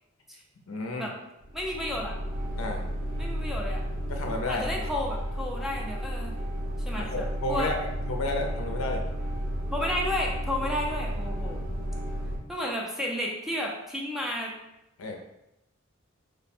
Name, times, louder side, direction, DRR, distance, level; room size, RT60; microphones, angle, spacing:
voice 1, 0.7-1.1 2.6-2.8 4.1-4.9 7.0-9.0 15.0-15.2, left 2 dB, 80° left, 2 dB, 0.6 m, -32 dB
sound 1, 1.4-12.4, equal, 75° right, 0.9 m, -33 dB
voice 2, 1.5-2.2 3.2-3.9 4.5-6.3 6.9-7.7 9.7-11.6 12.5-14.5, left 1 dB, ahead, -2 dB, 0.4 m, -32 dB
3.1 x 2.1 x 4.2 m, 0.88 s
head